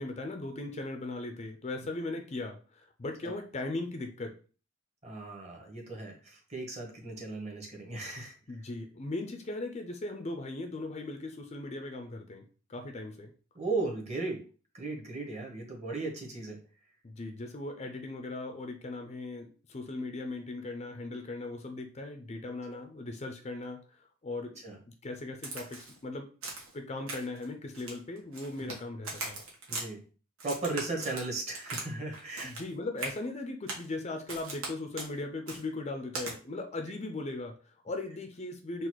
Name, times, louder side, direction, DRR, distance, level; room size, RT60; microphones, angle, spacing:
voice 1, 0.0-4.4 8.5-12.4 12.7-13.3 17.0-24.6 24.9-26.3 26.7-29.4 32.4-38.9, left 2 dB, 30° left, 5 dB, 0.5 m, -38 dB
voice 2, 5.0-8.3 13.5-14.4 14.7-16.6 22.7-22.8 24.6-24.8 28.6-28.7 29.7-30.0 30.4-32.5, right 3 dB, 30° right, 0 dB, 1.2 m, -36 dB
Crack, 25.4-26.0 26.4-26.7 27.1-27.4 27.7-28.8 29.0-29.9 30.4-31.9 32.1-32.7 33.0-33.2 33.7-33.9 34.3-34.7 35.0-35.1 35.5-35.6 36.1-36.3, right 3 dB, 75° right, 1.3 m, -39 dB
4.0 x 2.4 x 4.5 m, 0.38 s
head